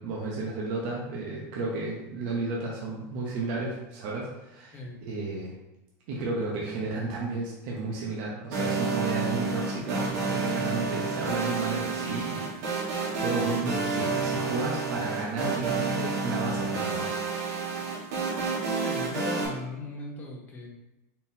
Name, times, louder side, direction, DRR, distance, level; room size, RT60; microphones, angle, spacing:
voice 1, 0.0-5.5 6.1-12.5 12.8-17.1 17.5-17.7, right 3 dB, 50° right, -3 dB, 0.8 m, -33 dB
voice 2, 4.7-5.0 18.8-20.7, left 2 dB, 20° left, -1 dB, 0.8 m, -38 dB
sound 1, 8.5-19.5, right 4 dB, 80° right, 1.3 m, -30 dB
4.3 x 3.8 x 2.7 m, 0.95 s
supercardioid pair, 165°, 9 cm